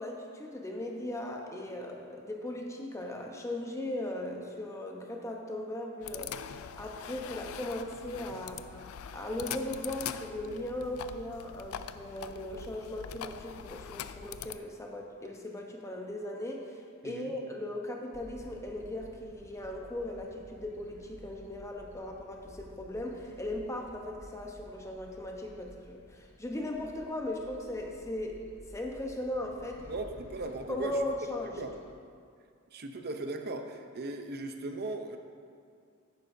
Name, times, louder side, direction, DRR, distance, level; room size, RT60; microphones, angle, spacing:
voice 1, 0.0-6.5 6.8-8.8 9.1-28.4 28.7-29.8 30.7-31.6, left 1 dB, 15° left, 1 dB, 0.8 m, -38 dB
sound 1, 6.0-14.6, left 8 dB, 80° left, 0.3 m, -43 dB
sound 2, 18.1-31.9, left 1 dB, 60° left, 0.8 m, -54 dB
voice 2, 29.9-31.0 31.6-31.7 32.7-35.2, right 2 dB, 50° right, 5 dB, 0.7 m, -38 dB
10.0 x 9.7 x 2.7 m, 2.2 s
head